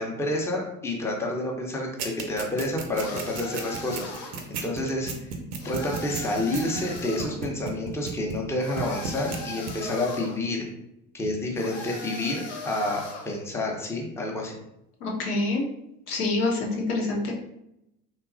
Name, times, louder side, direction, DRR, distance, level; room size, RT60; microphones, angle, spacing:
voice 1, 0.0-4.3 4.6-5.1 5.6-10.7 11.1-14.6, left 1 dB, 5° left, 0 dB, 0.5 m, -29 dB
sound 1, 2.0-8.5 8.8-9.4 9.7-9.8, right 6 dB, 75° right, 0.6 m, -33 dB
sound 2, 2.9-4.5 5.6-7.4 8.6-10.4 11.6-13.4, left 2 dB, 55° left, 0.8 m, -39 dB
voice 2, 15.0-15.6 16.1-17.3, left 2 dB, 85° left, -1 dB, 0.7 m, -26 dB
2.8 x 2.2 x 2.4 m, 0.83 s
figure-of-eight pair, 55°, 44 cm